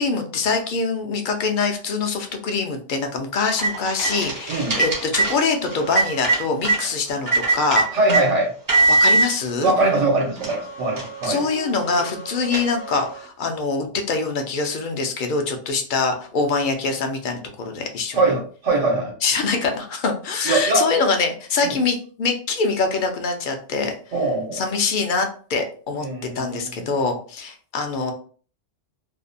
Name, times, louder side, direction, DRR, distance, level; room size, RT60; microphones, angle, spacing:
voice 1, 0.0-7.9 8.9-9.7 11.2-18.3 19.2-23.9 24.5-26.1 26.3-28.1, left 4 dB, 60° left, 4 dB, 0.5 m, -24 dB
sound 1, 3.3-6.8 7.3-8.2 8.7-9.3 9.9-10.0 10.4-13.2, right 2 dB, 35° right, 0.3 m, -22 dB
voice 2, 4.5-4.8 7.9-8.5 9.6-11.4 18.1-19.1 20.4-20.9 21.6-21.8 24.1-24.6 26.0-26.8, right 2 dB, 85° right, 0 dB, 1.1 m, -22 dB
2.6 x 2.1 x 2.5 m, 0.42 s
omnidirectional pair, 1.2 m